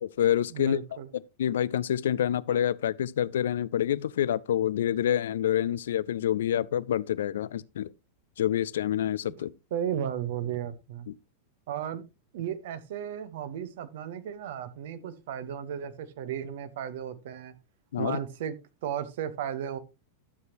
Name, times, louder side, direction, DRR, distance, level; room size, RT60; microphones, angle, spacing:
voice 1, 0.0-0.8 1.1-7.9 8.4-9.5 11.1-11.2 17.9-18.2, left 10 dB, 60° left, 0.4 m, -27 dB
voice 2, 0.5-1.1 9.7-11.1 11.7-12.0 12.3-17.5 18.0-18.5 18.8-19.8, right 9 dB, 55° right, 1.1 m, -34 dB
12.0 x 7.7 x 3.0 m
figure-of-eight pair, 90°, 0 cm